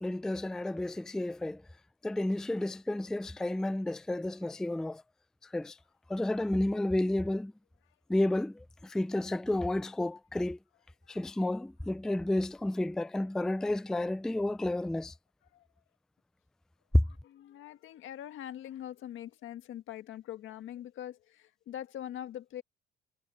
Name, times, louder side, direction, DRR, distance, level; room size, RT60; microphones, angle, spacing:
voice 1, 0.0-1.6 2.0-5.0 5.5-5.8 6.1-7.5 8.1-10.6 11.1-15.1 16.9-17.0, left 1 dB, 5° left, 0.3 m, -31 dB
voice 2, 17.2-22.6, left 11 dB, 80° left, 1.7 m, -43 dB
cardioid pair, 90°, 20 cm